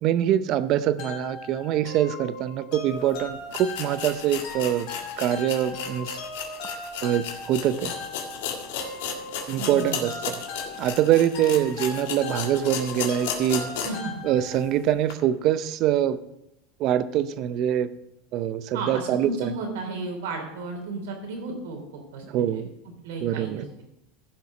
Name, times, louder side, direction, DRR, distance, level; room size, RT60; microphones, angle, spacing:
voice 1, 0.0-4.9 5.2-6.2 7.0-7.9 9.5-10.4 10.8-13.7 14.2-16.2 16.8-17.9 18.3-19.5 22.2-22.7 23.2-23.7, right 11 dB, 50° right, 14 dB, 0.6 m, -24 dB
sound 1, 1.0-14.8, left 2 dB, 60° left, 3.0 m, -39 dB
sound 2, 3.0-3.1 3.5-14.1 14.5-14.6 15.1-15.2, left 7 dB, 85° left, 1.8 m, -34 dB
voice 2, 9.6-10.1 11.4-11.6 13.8-14.1 18.7-22.6 23.0-23.6, right 3 dB, 90° right, 2 dB, 3.5 m, -34 dB
15.0 x 5.8 x 4.9 m, 0.85 s
supercardioid pair, 130°, 0 cm